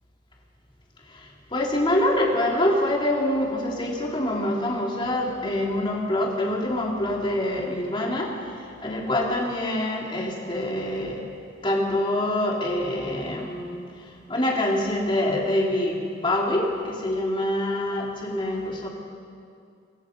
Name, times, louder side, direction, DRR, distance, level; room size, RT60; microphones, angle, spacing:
voice 1, 1.5-8.3 8.8-11.2 11.6-13.8 14.3-18.9, left 1 dB, 25° left, -1 dB, 3.2 m, -25 dB
26.5 x 23.5 x 5.4 m, 2.4 s
head